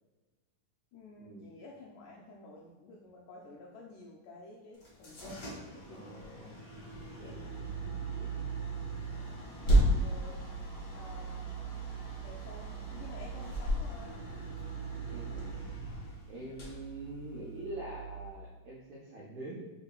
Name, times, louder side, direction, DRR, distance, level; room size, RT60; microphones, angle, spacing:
voice 1, 0.9-6.7 7.7-8.1 9.9-10.5 10.9-14.4 16.3-16.5, left 2 dB, 85° left, -4 dB, 1.8 m, -52 dB
sound 1, 4.7-17.7, right 1 dB, 60° left, 1.0 m, -35 dB
voice 2, 5.9-6.6 7.1-7.6 7.9-8.5 9.6-10.1 15.1-15.6 16.3-19.7, right 1 dB, 85° right, -4 dB, 1.6 m, -45 dB
sound 2, 6.9-18.3, right 9 dB, 55° right, 1.1 m, -43 dB
5.3 x 3.7 x 2.3 m, 1.2 s
omnidirectional pair, 4.1 m